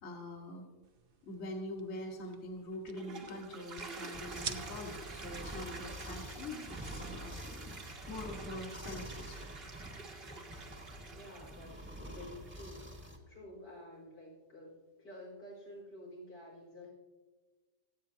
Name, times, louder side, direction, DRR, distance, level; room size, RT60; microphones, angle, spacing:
voice 1, 0.0-0.7 1.2-7.4 7.7-9.5, left 1 dB, 40° left, 0 dB, 1.7 m, -44 dB
sound 1, 0.8-7.5, right 7 dB, 60° right, 0.6 m, -50 dB
Toilet flush, 2.7-13.1, right 3 dB, 40° right, 1.3 m, -49 dB
sound 2, 4.1-13.2, right 1 dB, 5° right, 1.3 m, -47 dB
voice 2, 11.1-16.9, left 1 dB, 90° left, -4 dB, 4.9 m, -51 dB
25.0 x 8.6 x 2.8 m, 1.3 s
omnidirectional pair, 1.8 m